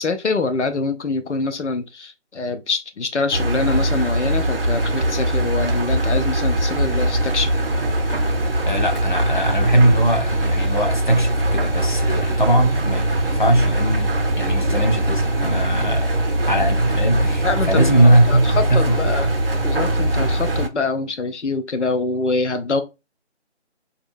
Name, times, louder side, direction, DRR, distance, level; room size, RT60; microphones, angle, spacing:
voice 1, 0.0-7.5 17.4-19.3 19.6-22.8, left 3 dB, 85° left, 0.6 m, -25 dB
Engine, 3.3-20.7, right 1 dB, 55° right, 0.6 m, -21 dB
voice 2, 8.7-19.1, right 1 dB, 45° left, 0.6 m, -20 dB
3.1 x 2.7 x 2.5 m
figure-of-eight pair, 165°, 34 cm